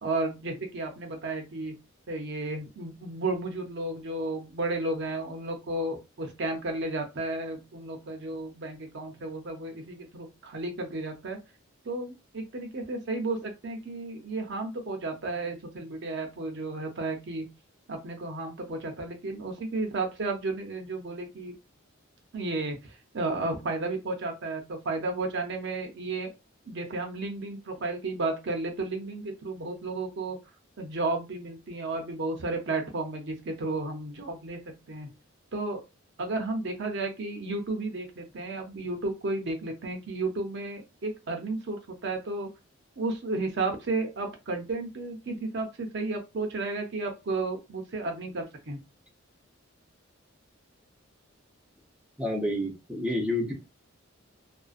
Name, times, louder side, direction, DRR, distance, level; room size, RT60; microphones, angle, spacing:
voice 1, 0.0-1.7 2.1-11.4 11.8-17.5 17.9-21.5 22.3-26.3 26.7-30.4 30.8-35.1 35.5-35.8 36.2-42.5 43.0-48.8, right 2 dB, 60° right, 4 dB, 0.6 m, -33 dB
voice 2, 52.2-53.5, left 1 dB, 5° right, -2 dB, 0.5 m, -29 dB
2.5 x 2.1 x 2.3 m, 0.25 s
head